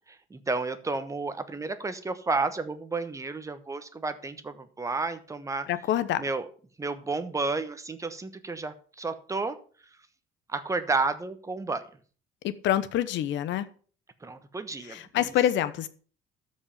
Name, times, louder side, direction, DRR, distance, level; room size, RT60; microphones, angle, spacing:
voice 1, 0.1-5.7 6.2-6.5 6.8-9.6 10.5-11.8 14.2-15.3, right 3 dB, 15° right, 1.2 m, -31 dB
voice 2, 5.7-6.2 12.4-13.7 14.8-15.9, left 12 dB, 70° left, 1.0 m, -26 dB
13.5 x 5.4 x 7.0 m
cardioid pair, 140°, 20 cm